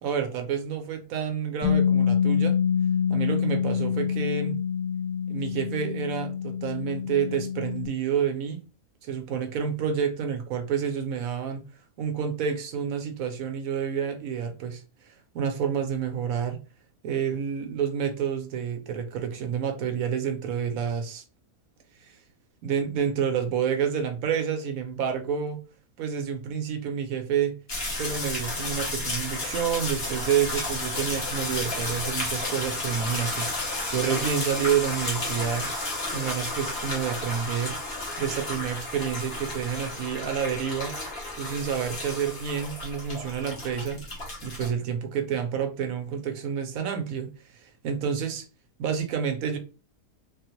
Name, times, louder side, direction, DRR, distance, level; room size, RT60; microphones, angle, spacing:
voice 1, 0.0-2.6 3.1-4.6 5.3-8.6 9.0-11.6 12.0-16.6 17.0-21.2 22.6-25.6 26.0-27.6 27.9-35.7 36.1-37.8 38.2-40.9 41.3-44.0 44.4-47.3 47.5-48.5 48.8-49.6, right 7 dB, 70° right, 1.0 m, -29 dB
Bass guitar, 1.6-7.9, left 7 dB, 25° right, 0.5 m, -26 dB
sound 1, 27.7-44.7, left 2 dB, 45° left, 1.2 m, -32 dB
3.5 x 2.1 x 2.9 m
omnidirectional pair, 1.6 m